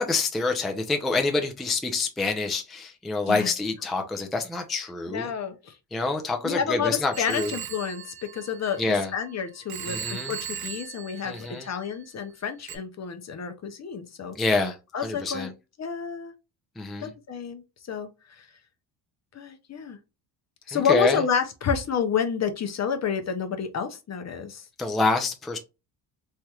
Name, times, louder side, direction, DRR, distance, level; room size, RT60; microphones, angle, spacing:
voice 1, 0.0-5.3 5.9-7.5 8.8-9.1 9.9-10.3 11.3-11.6 14.4-14.7 15.0-15.5 16.8-17.1 20.7-21.2 24.8-25.6, left 3 dB, ahead, 0.4 m, -26 dB
voice 2, 5.1-5.8 6.4-15.5 15.8-16.3 17.0-18.5 19.3-20.0 20.7-24.6, left 7 dB, 35° left, 0.6 m, -30 dB
Telephone, 7.1-9.2 9.7-12.0 12.7-12.8, right 9 dB, 55° right, 0.6 m, -38 dB
3.3 x 2.9 x 2.3 m
cardioid pair, 95°, 45 cm